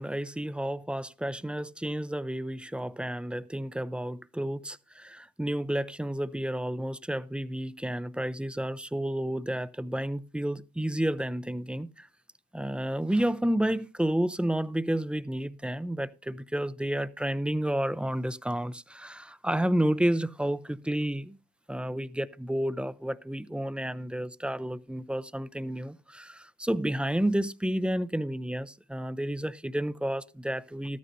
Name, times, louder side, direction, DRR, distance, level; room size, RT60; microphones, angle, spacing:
voice 1, 0.0-12.1 12.5-21.4 21.7-31.0, right 1 dB, 5° right, 0.5 m, -31 dB
13.5 x 12.5 x 2.6 m
cardioid pair, 90°, 30 cm